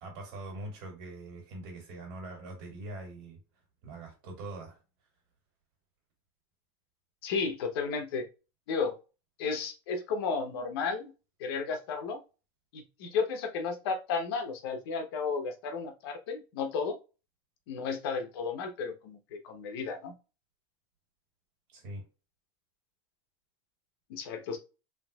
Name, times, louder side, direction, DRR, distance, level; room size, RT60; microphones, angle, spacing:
voice 1, 0.0-3.4 3.8-4.8 21.7-22.0, right 2 dB, 60° right, 2.0 m, -43 dB
voice 2, 7.2-8.3 8.7-8.9 9.4-11.1 11.4-12.2 12.7-17.0 17.7-20.1 24.1-24.6, left 5 dB, 80° left, 0.9 m, -33 dB
3.7 x 2.8 x 2.3 m
supercardioid pair, 160°, 13 cm